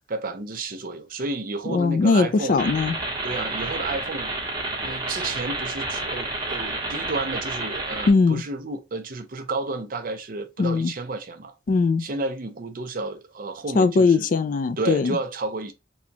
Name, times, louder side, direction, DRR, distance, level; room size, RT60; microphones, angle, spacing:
voice 1, 0.1-2.6 3.2-4.3 4.8-11.5 12.0-14.3 14.8-15.7, right 3 dB, 50° right, 0.5 m, -31 dB
voice 2, 1.7-2.9 8.1-8.4 10.6-10.9 11.7-12.0 13.8-15.2, left 4 dB, 45° left, 0.3 m, -20 dB
sound 1, 2.6-8.1, right 2 dB, 20° right, 1.1 m, -30 dB
4.2 x 2.3 x 2.8 m
head